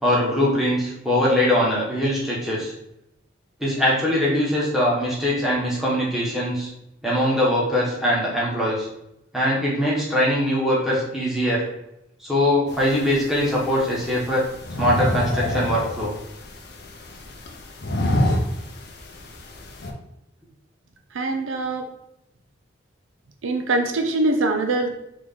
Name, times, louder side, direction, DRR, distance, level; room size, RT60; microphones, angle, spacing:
voice 1, 0.0-2.7 3.6-6.7 7.0-8.9 9.3-11.6 12.2-14.4 14.8-16.1, left 1 dB, ahead, -7 dB, 1.2 m, -22 dB
sound 1, 12.7-19.9, left 1 dB, 55° left, 0.6 m, -28 dB
voice 2, 21.1-21.9 23.4-24.9, right 2 dB, 75° right, 4 dB, 0.5 m, -23 dB
3.8 x 3.0 x 3.6 m, 0.84 s
head